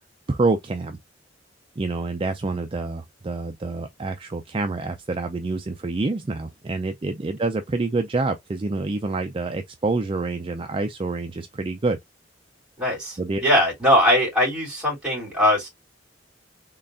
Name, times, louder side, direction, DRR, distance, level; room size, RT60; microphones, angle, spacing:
voice 1, 0.3-1.0 1.8-12.0 13.2-13.4, right 3 dB, 30° right, 0.4 m, -27 dB
voice 2, 12.8-15.7, equal, 5° right, 2.9 m, -21 dB
3.9 x 3.3 x 2.5 m
head